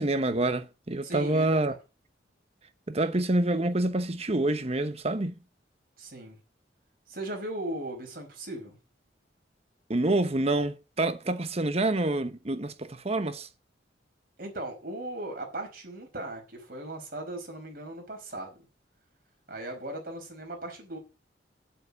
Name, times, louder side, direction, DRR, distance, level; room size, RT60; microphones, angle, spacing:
voice 1, 0.0-1.7 2.9-5.3 9.9-13.5, right 2 dB, 35° right, 1.0 m, -27 dB
voice 2, 1.0-1.8 6.0-6.4 7.1-8.8 14.4-18.7 19.5-21.0, right 1 dB, 50° right, 5.3 m, -38 dB
8.2 x 7.7 x 8.5 m
head